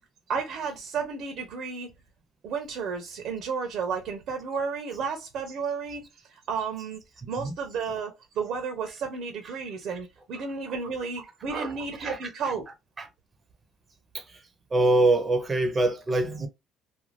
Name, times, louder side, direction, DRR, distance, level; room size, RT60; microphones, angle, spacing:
voice 1, 0.3-1.9 2.4-7.0 7.3-12.6, right 5 dB, 65° right, 0.7 m, -32 dB
voice 2, 14.7-16.5, right 2 dB, 25° right, 0.7 m, -24 dB
2.5 x 2.3 x 3.2 m
cardioid pair, 120°, 0 cm